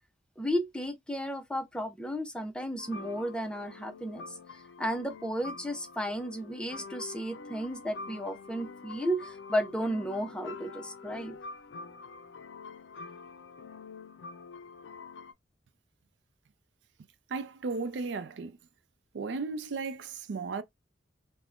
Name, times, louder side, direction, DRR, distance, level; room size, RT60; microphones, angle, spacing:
voice 1, 0.4-4.4 4.8-11.4, equal, 5° left, 0.5 m, -33 dB
sound 1, 2.8-15.3, left 4 dB, 85° left, 0.4 m, -46 dB
voice 2, 17.3-18.6 19.1-20.6, right 4 dB, 85° right, 0.4 m, -35 dB
3.5 x 2.1 x 2.4 m
head